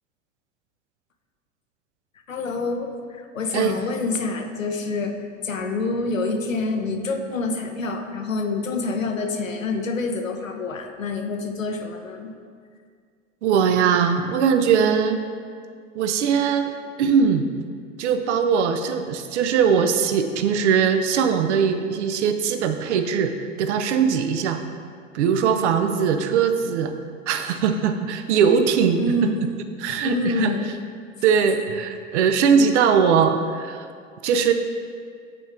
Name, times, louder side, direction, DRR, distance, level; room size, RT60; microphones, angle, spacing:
voice 1, 2.3-5.1 5.4-12.3 29.0-29.5 30.0-30.7, left 3 dB, 90° left, 4 dB, 0.7 m, -27 dB
voice 2, 13.4-15.2 15.9-17.5 18.0-24.6 25.1-26.9 27.3-29.3 29.8-30.5 31.2-33.9 34.2-34.5, right 6 dB, 65° right, 8 dB, 0.6 m, -20 dB
9.1 x 3.5 x 3.4 m, 2.1 s
figure-of-eight pair, 80°, 38 cm